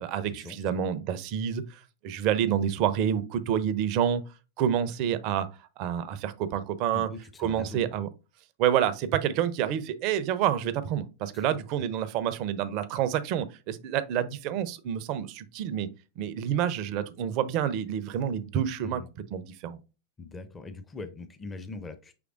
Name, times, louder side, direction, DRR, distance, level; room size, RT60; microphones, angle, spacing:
voice 1, 0.0-4.2 4.6-5.5 5.8-7.1 7.4-8.1 8.6-15.9 16.2-19.0 19.3-19.8, right 9 dB, 40° right, 0.5 m, -28 dB
voice 2, 6.9-8.0 11.3-11.4 18.8-19.1 20.2-22.2, left 3 dB, 15° left, 0.5 m, -41 dB
5.9 x 3.2 x 2.5 m
figure-of-eight pair, 90°, 0 cm